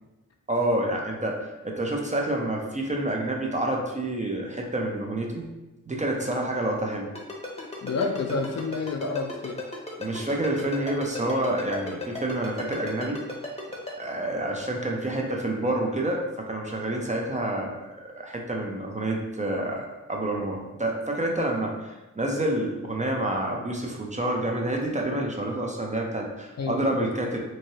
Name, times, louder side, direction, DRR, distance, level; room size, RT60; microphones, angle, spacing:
voice 1, 0.5-5.5 5.9-7.1 10.0-13.2 14.0-27.4, right 1 dB, 25° right, 0 dB, 0.5 m, -28 dB
Ringtone, 7.2-13.9, left 3 dB, 20° left, 0.7 m, -35 dB
voice 2, 7.8-9.6 26.6-27.0, left 4 dB, 55° left, 3 dB, 0.4 m, -29 dB
3.1 x 2.7 x 2.7 m, 1.0 s
wide cardioid pair, 75°, 31 cm